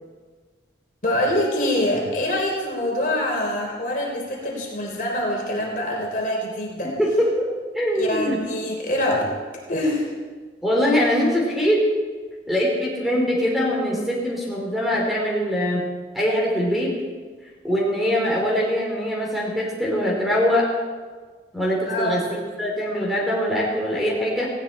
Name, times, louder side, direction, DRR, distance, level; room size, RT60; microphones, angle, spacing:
voice 1, 1.0-6.9 7.9-10.1 21.9-22.1, left 1 dB, 45° left, -1 dB, 3.5 m, -25 dB
voice 2, 7.0-7.5 7.7-8.4 10.6-11.8 12.5-15.8 16.1-16.9 17.6-20.7 21.5-24.5, equal, ahead, -3 dB, 3.3 m, -22 dB
18.5 x 16.5 x 4.3 m, 1.5 s
head